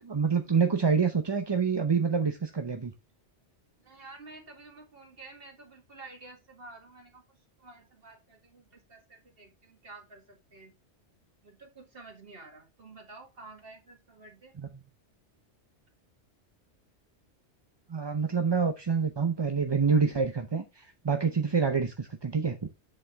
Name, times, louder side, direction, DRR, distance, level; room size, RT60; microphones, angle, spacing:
voice 1, 0.0-2.9 14.6-14.7 17.9-22.7, right 5 dB, 30° right, 0.6 m, -27 dB
voice 2, 3.8-10.7 11.4-14.6, right 3 dB, 55° right, 2.1 m, -50 dB
7.8 x 6.1 x 3.4 m
omnidirectional pair, 1.2 m